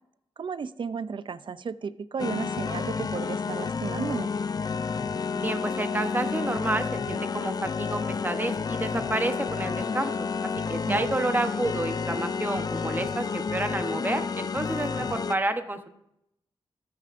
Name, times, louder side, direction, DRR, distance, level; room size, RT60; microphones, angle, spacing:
voice 1, 0.4-4.3 10.9-11.1, right 5 dB, 55° right, 15 dB, 0.4 m, -33 dB
sound 1, 2.2-15.4, left 5 dB, 40° left, 0.3 m, -30 dB
voice 2, 5.3-10.3 10.7-15.9, right 2 dB, 20° right, 7 dB, 0.9 m, -30 dB
14.0 x 9.4 x 2.5 m, 0.78 s
wide cardioid pair, 95°, 10 cm